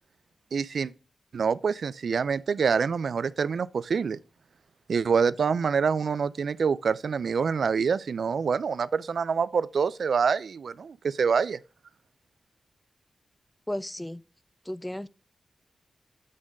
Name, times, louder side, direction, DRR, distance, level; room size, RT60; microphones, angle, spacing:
voice 1, 0.5-0.9 1.3-4.2 4.9-11.6, right 6 dB, 75° right, 0.3 m, -26 dB
voice 2, 13.7-14.2 14.7-15.1, left 1 dB, 10° left, 0.3 m, -34 dB
8.6 x 3.7 x 5.2 m
cardioid pair, 75°, 0 cm